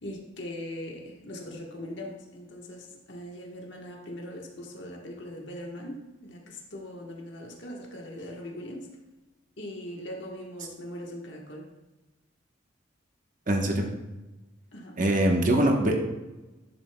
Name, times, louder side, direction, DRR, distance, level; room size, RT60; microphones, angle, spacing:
voice 1, 0.0-8.9 9.6-11.7 14.7-15.3, left 1 dB, 60° left, 0 dB, 1.2 m, -40 dB
voice 2, 13.5-13.9 15.0-15.9, right 1 dB, 40° right, 2 dB, 1.0 m, -23 dB
11.0 x 6.8 x 2.2 m, 1.1 s
head